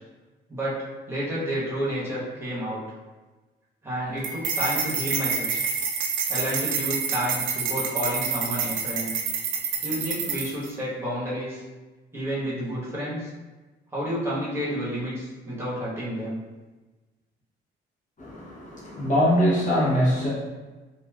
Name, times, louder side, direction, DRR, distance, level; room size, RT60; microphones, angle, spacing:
voice 1, 1.1-2.8 3.8-5.6 6.3-9.1 9.8-11.6 12.1-13.3 13.9-16.4, equal, 15° right, -9 dB, 1.2 m, -30 dB
sound 1, 4.2-10.7, right 6 dB, 75° right, 0.5 m, -28 dB
voice 2, 18.2-20.3, equal, 40° left, -7 dB, 0.9 m, -23 dB
3.0 x 2.5 x 2.3 m, 1.2 s
cardioid pair, 90°, 20 cm